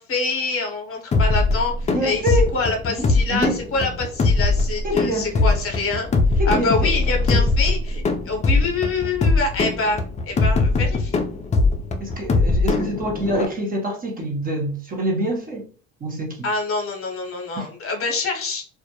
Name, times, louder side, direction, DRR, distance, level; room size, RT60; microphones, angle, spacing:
voice 1, 0.0-11.2 16.4-18.6, left 3 dB, 40° left, 0.9 m, -26 dB
sound 1, 1.1-13.5, left 3 dB, 20° left, 0.3 m, -21 dB
voice 2, 1.9-2.5 3.0-3.6 4.8-5.5 6.4-6.9 7.3-7.5 12.0-15.7 16.0-16.5 17.6-17.7, right 1 dB, 25° right, 0.6 m, -26 dB
2.2 x 2.0 x 2.8 m
supercardioid pair, 100°, 33 cm